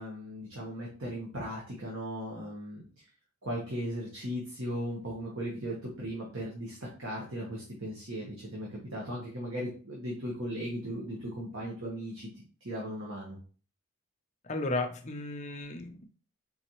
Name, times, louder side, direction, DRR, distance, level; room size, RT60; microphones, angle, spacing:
voice 1, 0.0-2.8 3.4-13.4, equal, 65° right, -3 dB, 1.2 m, -37 dB
voice 2, 14.4-16.1, left 2 dB, 30° left, 4 dB, 0.5 m, -34 dB
4.2 x 4.0 x 3.0 m, 0.40 s
head